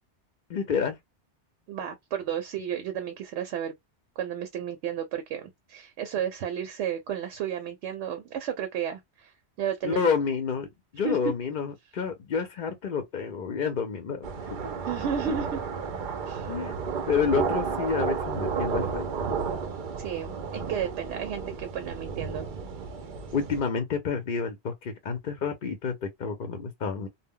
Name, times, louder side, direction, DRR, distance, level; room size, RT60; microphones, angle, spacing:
voice 1, 0.5-1.0 9.8-14.3 16.5-16.8 17.1-19.1 23.3-27.1, left 6 dB, 55° left, 0.7 m, -29 dB
voice 2, 1.7-3.7 4.2-10.0 11.0-11.2 14.8-15.6 16.3-16.5 20.0-22.5, right 8 dB, 80° right, 0.9 m, -32 dB
sound 1, 14.2-23.6, right 5 dB, 55° right, 0.6 m, -32 dB
2.1 x 2.1 x 3.5 m
omnidirectional pair, 1.2 m